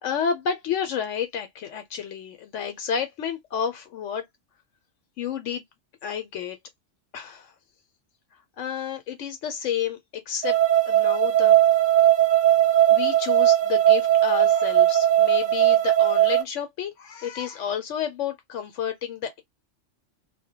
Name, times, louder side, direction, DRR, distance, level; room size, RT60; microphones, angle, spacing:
voice 1, 0.0-4.2 5.2-5.6 6.0-6.6 7.1-7.5 8.6-10.6 10.9-11.6 12.9-19.4, left 8 dB, 75° left, 0.9 m, -30 dB
sound 1, 10.4-16.4, right 12 dB, 80° right, 1.0 m, -19 dB
2.2 x 2.1 x 2.8 m
omnidirectional pair, 1.3 m